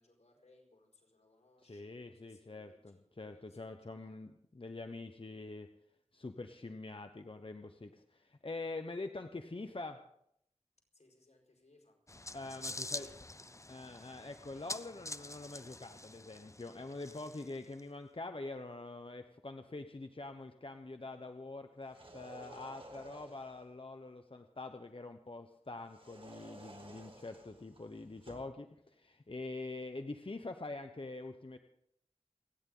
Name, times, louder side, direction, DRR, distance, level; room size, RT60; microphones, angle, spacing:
voice 1, 0.0-4.2 10.9-12.0 12.5-13.4, left 2 dB, 85° left, -1 dB, 4.8 m, -66 dB
voice 2, 1.7-5.7 6.1-10.0 12.3-13.1 13.7-31.6, left 2 dB, 50° left, 6 dB, 1.0 m, -45 dB
sound 1, 12.1-17.8, left 2 dB, 25° left, 0.6 m, -46 dB
sound 2, 21.8-23.7 25.9-28.6, right 1 dB, 55° right, 4.1 m, -54 dB
29.0 x 10.5 x 3.9 m, 0.74 s
wide cardioid pair, 45°, 12 cm